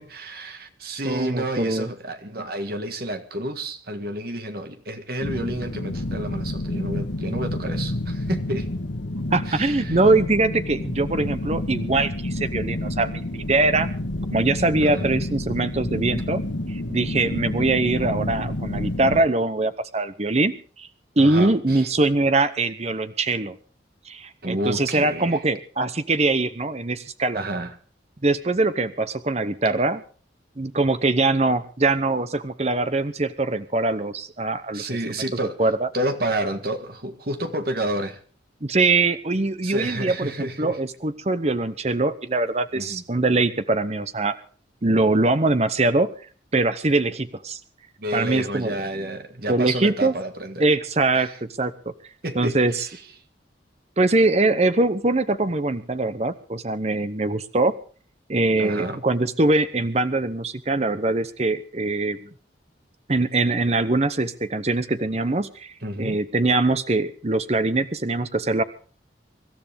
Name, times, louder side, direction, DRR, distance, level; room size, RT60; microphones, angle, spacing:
voice 1, 0.0-8.7 9.5-10.0 14.8-15.2 21.2-21.9 24.4-25.4 27.3-27.7 34.7-35.6 35.9-38.2 39.6-40.8 42.7-43.0 48.0-50.6 51.1-51.4 52.2-53.0 58.6-59.0 65.8-66.2, right 1 dB, 55° right, 7 dB, 1.8 m, -30 dB
voice 2, 1.0-1.9 9.3-13.9 14.3-16.4 16.7-20.9 21.2-23.6 24.1-27.4 28.2-30.0 30.6-34.9 35.6-35.9 38.6-44.4 44.8-46.1 46.5-47.6 48.1-48.7 49.5-50.1 50.6-51.7 52.3-52.9 54.0-57.7 58.3-62.3 63.1-65.7 66.0-68.6, right 2 dB, 35° right, 12 dB, 0.9 m, -22 dB
sound 1, 5.2-19.2, left 1 dB, 80° left, 1.5 m, -29 dB
25.0 x 13.0 x 3.6 m, 0.41 s
head